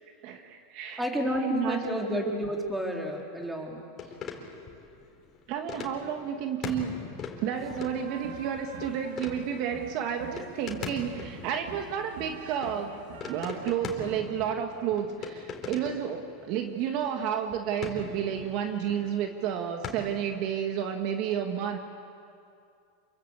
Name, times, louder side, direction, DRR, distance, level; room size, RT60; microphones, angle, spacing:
voice 1, 0.2-1.0 1.4-2.1 5.5-6.9 7.4-13.0 13.3-21.8, right 8 dB, 55° right, 4 dB, 1.9 m, -31 dB
voice 2, 1.0-3.8, equal, 5° right, 0 dB, 4.2 m, -30 dB
sound 1, 4.0-19.9, left 6 dB, 35° left, 4.2 m, -42 dB
sound 2, 7.5-13.6, right 5 dB, 80° right, 3.2 m, -45 dB
27.5 x 23.5 x 8.3 m, 2.4 s
supercardioid pair, 125°, 0 cm